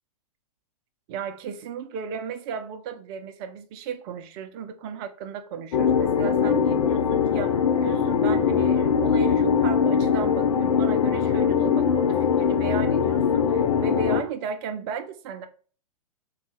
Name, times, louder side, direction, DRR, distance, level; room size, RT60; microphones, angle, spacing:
voice 1, 1.1-15.5, right 6 dB, 40° right, 0.5 m, -35 dB
sound 1, 5.7-14.2, left 6 dB, 75° left, 0.5 m, -22 dB
3.1 x 2.3 x 3.1 m
hypercardioid pair, 115°, 19 cm